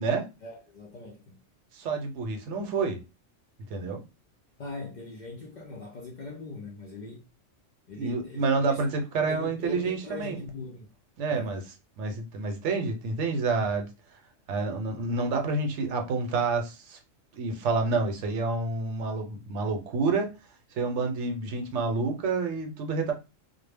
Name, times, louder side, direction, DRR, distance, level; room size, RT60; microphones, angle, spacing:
voice 1, 0.4-1.4 4.6-7.3 7.9-8.8 9.3-10.9 11.3-11.6, left 2 dB, 60° left, 0.5 m, -41 dB
voice 2, 1.7-3.0 3.7-4.0 8.0-10.4 11.2-11.6 12.0-13.9 14.5-17.0 17.3-20.3 20.8-23.1, right 4 dB, 75° right, 0.9 m, -28 dB
2.1 x 2.0 x 3.3 m
omnidirectional pair, 1.2 m